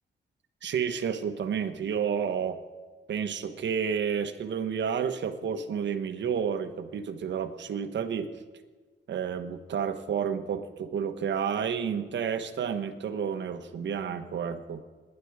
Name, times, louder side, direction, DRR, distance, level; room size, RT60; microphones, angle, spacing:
voice 1, 0.6-2.6 3.1-8.3 9.1-14.8, right 7 dB, 70° right, 9 dB, 1.2 m, -30 dB
27.0 x 11.0 x 4.9 m, 1.4 s
cardioid pair, 115°, 19 cm